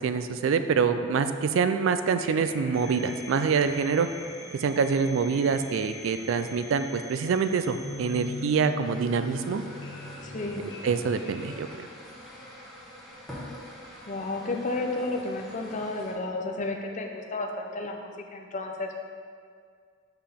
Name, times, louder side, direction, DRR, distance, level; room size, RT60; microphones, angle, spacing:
voice 1, 0.0-4.1 4.5-9.6 10.8-11.7, right 5 dB, 70° right, 9 dB, 0.3 m, -25 dB
sound 1, 2.2-11.6, left 2 dB, 85° left, 1.0 m, -42 dB
Telephone, 2.7-8.6, right 1 dB, 30° right, 1.4 m, -48 dB
sound 2, 8.8-16.1, left 1 dB, ahead, 1.2 m, -45 dB
voice 2, 10.2-10.6 14.1-19.0, left 2 dB, 40° left, 2 dB, 0.6 m, -32 dB
6.6 x 5.8 x 3.6 m, 2.1 s
head